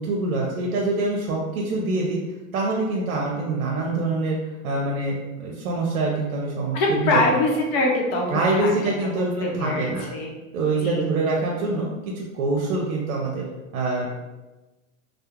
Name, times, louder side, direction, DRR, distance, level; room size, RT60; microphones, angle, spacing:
voice 1, 0.0-2.2 2.5-7.2 8.3-10.0 10.5-11.9 12.1-13.5 13.7-14.2, right 3 dB, 85° right, -2 dB, 0.6 m, -25 dB
voice 2, 6.7-10.3 10.8-11.0, left 2 dB, 45° left, -1 dB, 0.7 m, -24 dB
2.3 x 2.1 x 2.9 m, 1.1 s
supercardioid pair, 145°, 42 cm